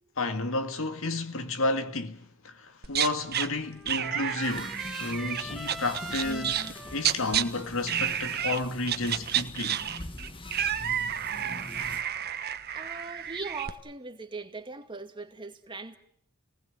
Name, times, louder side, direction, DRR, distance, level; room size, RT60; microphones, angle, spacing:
voice 1, 0.2-9.8, left 2 dB, 65° left, 1.9 m, -32 dB
sound 1, 2.8-3.5 3.9-6.7 7.0-7.4 7.9-8.6 8.9-13.7, right 9 dB, 45° right, 1.3 m, -30 dB
Trumpet, 3.2-9.4, right 2 dB, ahead, 2.5 m, -44 dB
sound 2, 4.4-12.0, left 1 dB, 25° left, 1.4 m, -43 dB
voice 2, 12.7-15.9, right 4 dB, 20° right, 2.1 m, -40 dB
29.5 x 19.5 x 9.5 m
head